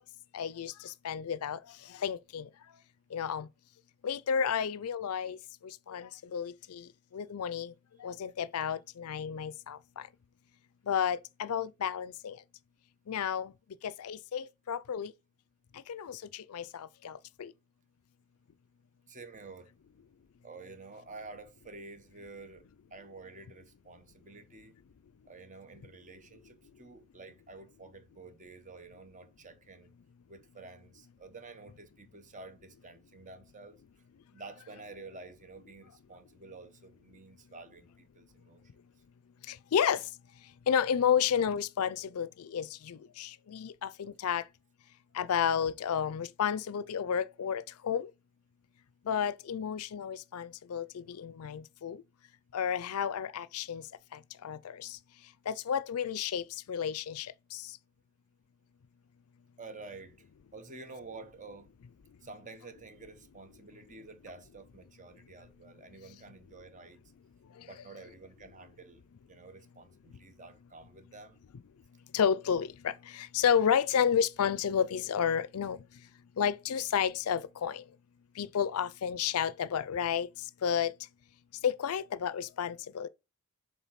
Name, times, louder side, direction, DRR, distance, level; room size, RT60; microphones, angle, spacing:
voice 1, 0.3-0.7 1.0-1.6 2.0-2.4 3.1-3.5 4.0-5.4 5.9-6.8 7.1-7.7 8.0-9.8 10.9-12.3 13.1-13.5 13.8-15.1 15.9-16.2 16.5-17.1 17.4-17.5 39.7-40.0 40.7-44.4 45.2-48.1 49.1-52.0 52.5-53.8 54.4-54.6 55.5-56.4 56.7-57.3 72.1-75.8 76.4-77.8 78.4-80.3 80.6-80.9 81.6-83.1, left 8 dB, 75° left, 0.4 m, -31 dB
voice 2, 19.1-19.7 20.4-22.6 22.9-24.8 25.3-29.9 30.3-33.8 34.3-38.6 59.6-60.3 60.5-61.7 62.2-67.0 67.5-69.0 69.3-71.4, right 3 dB, 35° right, 1.2 m, -50 dB
7.2 x 3.7 x 5.8 m
head